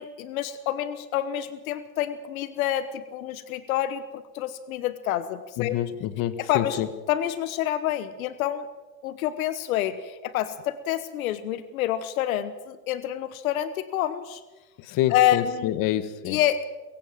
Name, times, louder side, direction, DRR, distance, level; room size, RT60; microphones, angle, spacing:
voice 1, 0.0-5.8 6.4-6.8 7.1-8.7 9.0-14.4 15.1-15.7 16.3-16.6, left 12 dB, 85° left, 14 dB, 1.2 m, -27 dB
voice 2, 5.6-6.9 14.8-16.4, left 11 dB, 50° left, 13 dB, 1.6 m, -27 dB
22.0 x 16.5 x 7.6 m, 1.2 s
supercardioid pair, 110°, 41 cm